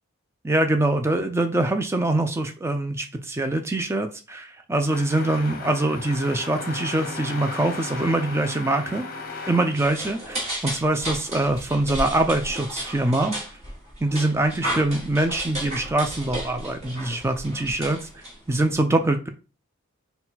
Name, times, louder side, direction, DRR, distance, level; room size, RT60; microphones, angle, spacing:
voice 1, 0.4-9.1 9.5-13.4 14.0-18.1 18.5-19.3, right 2 dB, 10° right, 6 dB, 0.4 m, -24 dB
sound 1, 4.8-10.6, left 3 dB, 40° left, 0.7 m, -36 dB
sound 2, 9.7-18.8, right 1 dB, 30° right, 1.4 m, -34 dB
4.1 x 2.3 x 4.0 m, 0.34 s
head